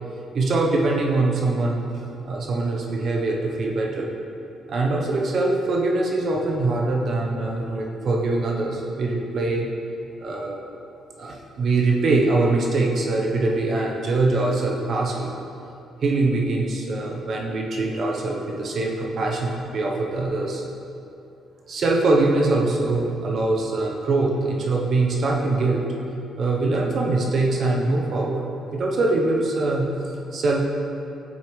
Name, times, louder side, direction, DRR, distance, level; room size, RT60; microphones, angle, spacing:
voice 1, 0.3-1.8 2.2-4.1 4.7-9.7 10.2-10.6 11.2-15.3 16.0-20.6 21.7-25.8 26.4-28.5 28.7-29.9 30.3-30.7, right 2 dB, 55° right, 0 dB, 0.7 m, -23 dB
9.3 x 4.1 x 3.1 m, 2.7 s
cardioid pair, 90°, 0 cm